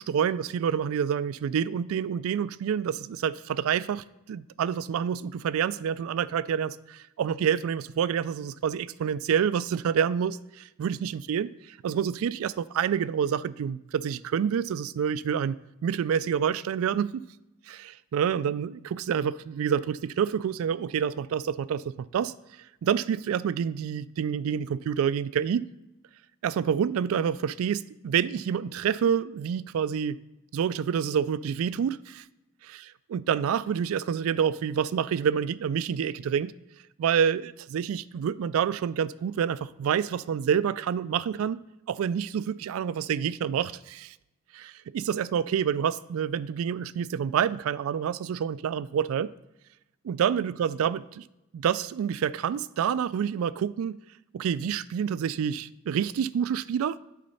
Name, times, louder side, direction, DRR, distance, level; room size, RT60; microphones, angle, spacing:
voice 1, 0.0-15.6 15.8-17.2 17.7-22.3 22.8-25.7 26.4-30.2 30.5-32.2 32.7-32.8 33.1-36.5 37.0-41.6 41.9-44.1 44.5-49.3 50.0-51.2 51.5-54.0 54.3-57.0, right 8 dB, 75° right, 0.3 m, -28 dB
8.3 x 3.9 x 5.5 m
head